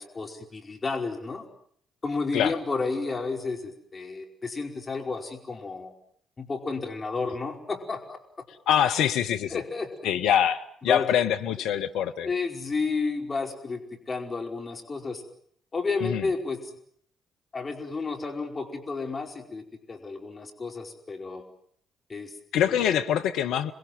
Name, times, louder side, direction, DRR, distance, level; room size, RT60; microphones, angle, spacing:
voice 1, 0.0-1.5 2.0-5.9 6.4-8.5 9.5-9.9 10.9-11.1 12.2-15.2 15.7-16.6 17.5-21.4 22.1-22.8, left 4 dB, 35° left, 3 dB, 5.0 m, -32 dB
voice 2, 8.7-9.6 10.0-12.3 16.0-16.2 22.5-23.7, left 9 dB, 65° left, 8 dB, 1.1 m, -24 dB
28.5 x 21.5 x 8.0 m, 0.64 s
figure-of-eight pair, 45°, 0 cm